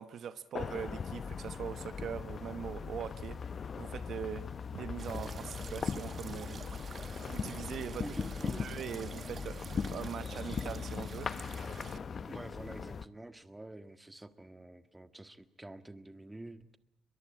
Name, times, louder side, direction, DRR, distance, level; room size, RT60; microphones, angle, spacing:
voice 1, 0.0-6.8 7.3-8.0 8.5-11.3, right 8 dB, 65° right, 12 dB, 1.1 m, -42 dB
sound 1, 0.5-13.1, left 6 dB, 45° left, 0.9 m, -39 dB
sound 2, 5.0-12.0, right 5 dB, 45° right, 1.2 m, -49 dB
voice 2, 8.0-8.7 12.3-16.8, right 2 dB, 15° right, 10 dB, 1.6 m, -48 dB
23.0 x 22.5 x 8.7 m, 0.75 s
cardioid pair, 90°, 0 cm